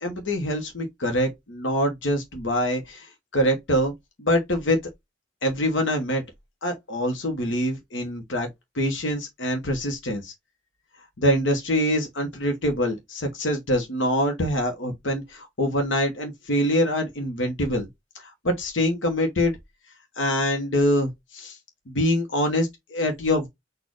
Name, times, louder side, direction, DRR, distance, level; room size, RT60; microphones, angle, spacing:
voice 1, 0.0-3.9 4.2-4.8 5.4-6.2 6.6-8.5 8.7-10.3 11.2-17.9 18.1-19.6 20.2-21.6 21.9-23.5, equal, 85° left, 1.1 m, -25 dB
4.2 x 2.5 x 4.7 m
head